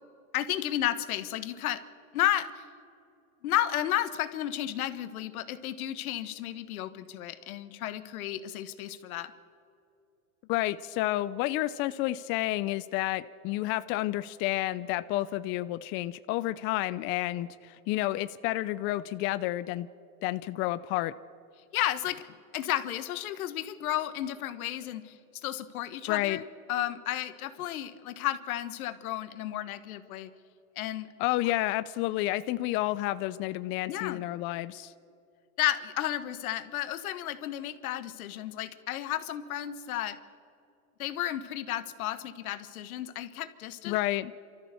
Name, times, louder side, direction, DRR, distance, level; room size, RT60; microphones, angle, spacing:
voice 1, 0.3-1.8 2.1-2.6 3.4-9.3 21.7-22.3 22.5-25.2 25.4-26.4 26.7-30.3 30.8-31.1 33.9-34.2 35.6-40.2 41.0-44.0, left 12 dB, 75° left, 12 dB, 1.4 m, -32 dB
voice 2, 10.5-19.9 20.2-21.1 26.1-26.4 31.2-34.9 43.9-44.3, left 16 dB, 30° left, 14 dB, 0.4 m, -30 dB
28.5 x 13.5 x 6.9 m, 2.6 s
hypercardioid pair, 120°, 44 cm